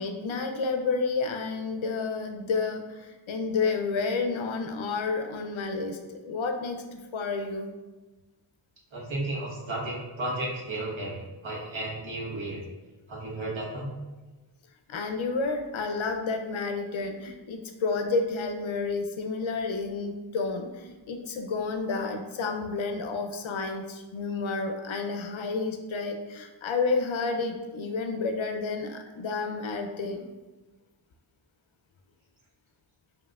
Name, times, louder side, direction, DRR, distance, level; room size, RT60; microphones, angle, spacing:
voice 1, 0.0-7.7 14.9-30.3, left 4 dB, 75° left, 5 dB, 0.6 m, -30 dB
voice 2, 8.9-12.6 13.1-13.9, right 2 dB, 70° right, -4 dB, 1.2 m, -33 dB
5.0 x 2.7 x 2.3 m, 1.2 s
wide cardioid pair, 80°, 49 cm